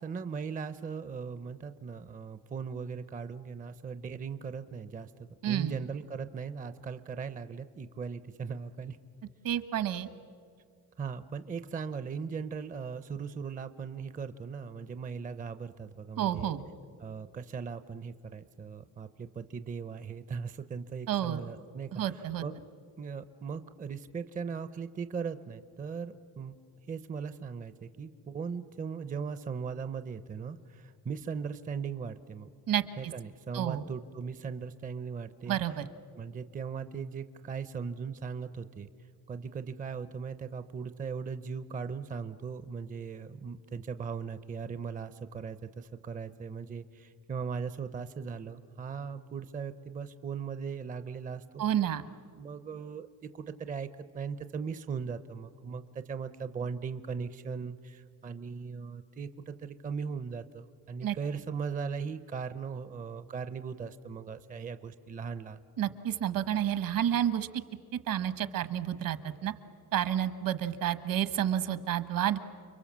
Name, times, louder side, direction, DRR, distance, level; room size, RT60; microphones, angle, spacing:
voice 1, 0.0-9.0 11.0-16.5 17.0-22.5 23.0-26.5 26.9-32.5 33.0-35.6 36.2-38.9 39.3-51.6 52.4-53.1 53.3-53.9 54.1-65.6, right 6 dB, 25° right, 12 dB, 0.5 m, -38 dB
voice 2, 5.4-5.7 9.4-10.1 16.2-16.6 21.1-21.4 21.9-22.4 32.7-33.1 33.5-33.8 35.5-35.8 51.6-52.0 61.0-61.2 65.8-67.5 68.1-69.5 69.9-72.4, right 10 dB, 65° right, 12 dB, 1.2 m, -30 dB
30.0 x 22.5 x 7.3 m, 2.3 s
cardioid pair, 155°, 36 cm